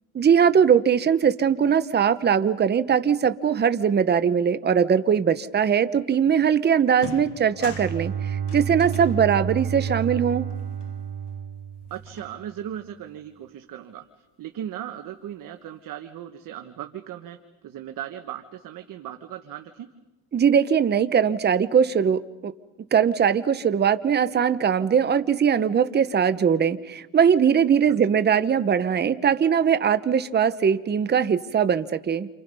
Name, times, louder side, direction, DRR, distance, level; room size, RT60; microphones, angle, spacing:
voice 1, 0.1-10.5 20.3-22.5 22.9-32.3, right 7 dB, 25° right, 11 dB, 1.0 m, -21 dB
sound 1, 6.3-6.5 6.9-11.5 11.8-12.8, left 8 dB, 80° left, 1.9 m, -44 dB
Bowed string instrument, 7.3-12.3, right 8 dB, 75° right, 3.9 m, -31 dB
voice 2, 11.9-17.4 17.6-19.9 27.9-28.0, right 10 dB, 50° right, 6 dB, 1.5 m, -37 dB
29.0 x 28.0 x 5.5 m, 1.1 s
cardioid pair, 120°, 40 cm